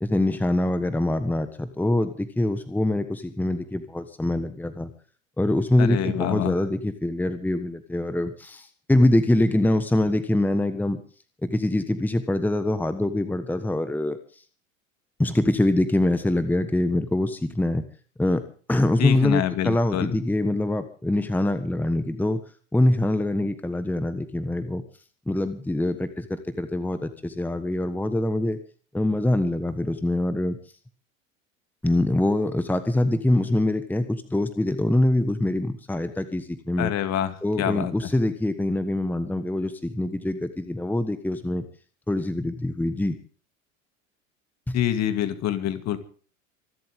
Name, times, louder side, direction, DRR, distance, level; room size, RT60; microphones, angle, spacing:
voice 1, 0.0-4.9 5.4-11.0 11.4-14.2 15.2-17.8 18.2-18.4 18.7-22.4 22.7-24.8 25.3-28.6 28.9-30.6 31.8-36.9 37.4-41.6 42.1-43.2 44.7-44.8, left 1 dB, 5° left, 11 dB, 1.4 m, -24 dB
voice 2, 5.8-6.5 19.0-20.2 36.8-37.9 44.7-46.0, left 11 dB, 40° left, 10 dB, 2.5 m, -26 dB
25.5 x 12.5 x 3.7 m, 0.41 s
figure-of-eight pair, 80°, 39 cm